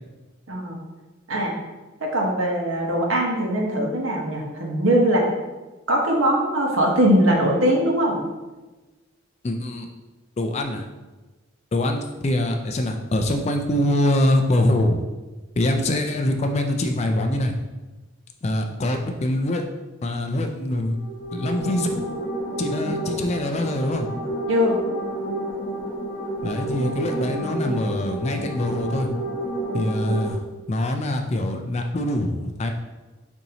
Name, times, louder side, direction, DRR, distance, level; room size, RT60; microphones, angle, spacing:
voice 1, 0.5-0.8 1.3-1.5 2.0-5.3 5.9-8.2 24.5-24.8, equal, 75° right, 0 dB, 1.0 m, -21 dB
voice 2, 9.4-9.9 10.4-10.9 11.7-15.0 15.6-17.5 18.4-19.6 20.0-21.0 21.3-21.9 22.6-24.1 26.4-29.1 29.7-30.4 30.7-32.7, left 1 dB, 30° left, 4 dB, 0.3 m, -24 dB
sound 1, 20.9-30.3, right 1 dB, 55° left, 1.1 m, -30 dB
7.0 x 2.7 x 2.8 m, 1.2 s
head